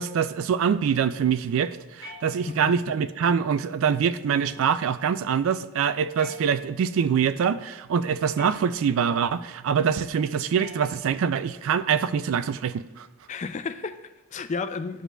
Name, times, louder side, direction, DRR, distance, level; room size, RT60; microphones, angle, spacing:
voice 1, 0.0-13.1, right 7 dB, 65° right, 13 dB, 0.3 m, -24 dB
sound 1, 2.0-2.9 4.3-4.9 6.2-7.0 8.4-9.1 10.5-11.4, left 1 dB, 20° left, 1.1 m, -46 dB
voice 2, 13.3-15.0, left 4 dB, 35° left, 9 dB, 0.3 m, -32 dB
12.0 x 5.0 x 2.2 m, 1.1 s
head